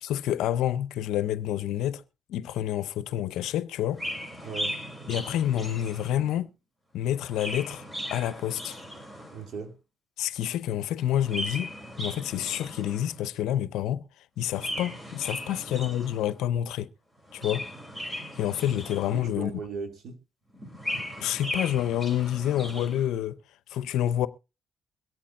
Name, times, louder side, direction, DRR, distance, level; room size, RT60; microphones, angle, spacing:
voice 1, 0.0-2.0 2.3-4.0 5.1-6.5 6.9-7.8 8.1-8.8 10.2-11.7 12.0-14.0 14.4-16.9 17.3-17.7 18.4-19.5 21.2-23.4 23.7-24.3, left 11 dB, 90° left, 0.5 m, -28 dB
Chirp tweet, 3.9-6.4 7.1-9.5 11.1-13.3 14.5-16.4 17.2-19.5 20.5-23.1, left 1 dB, 20° right, 3.4 m, -37 dB
voice 2, 4.4-4.8 9.3-9.8 15.5-15.6 19.1-20.2, right 5 dB, 70° right, 2.2 m, -38 dB
22.5 x 8.6 x 2.5 m
cardioid pair, 90°, 0 cm